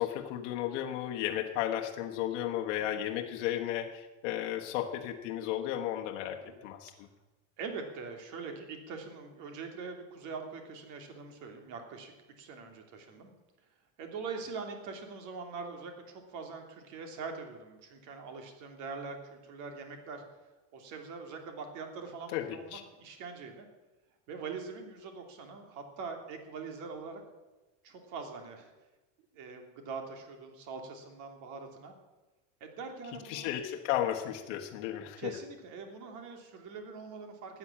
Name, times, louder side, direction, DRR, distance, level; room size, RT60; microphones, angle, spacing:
voice 1, 0.0-7.1 22.3-22.8 33.2-35.4, left 12 dB, 70° left, 3 dB, 1.3 m, -34 dB
voice 2, 7.6-13.3 14.0-20.2 20.7-23.7 24.3-27.2 27.8-28.7 29.3-31.9 32.6-33.5 35.2-37.6, right 4 dB, 50° right, 4 dB, 3.0 m, -43 dB
13.5 x 9.7 x 8.6 m, 1.1 s
supercardioid pair, 160°, 38 cm